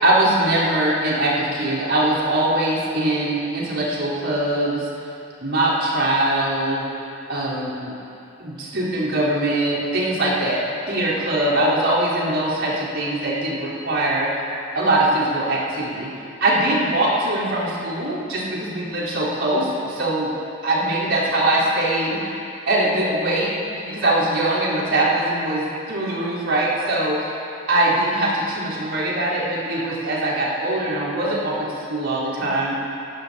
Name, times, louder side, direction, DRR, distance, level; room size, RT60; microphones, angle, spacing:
voice 1, 0.0-4.9 5.4-6.9 7.3-7.9 8.4-14.3 14.7-16.1 16.4-20.3 20.6-22.4 22.7-27.3 27.7-32.7, right 1 dB, 65° right, -8 dB, 4.1 m, -22 dB
21.0 x 15.0 x 2.9 m, 2.7 s
head